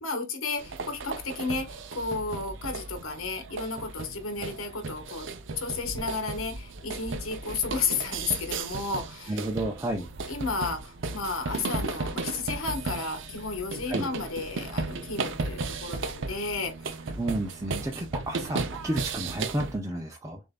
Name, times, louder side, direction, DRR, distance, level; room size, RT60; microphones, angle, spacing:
voice 1, 0.0-5.3 5.6-9.4 10.3-16.7, left 4 dB, 85° left, 1.3 m, -33 dB
sound 1, 0.6-19.8, right 3 dB, 65° right, 0.6 m, -35 dB
voice 2, 9.3-10.1 13.9-14.1 17.2-20.4, right 1 dB, 15° right, 0.5 m, -31 dB
6.5 x 2.6 x 2.3 m
head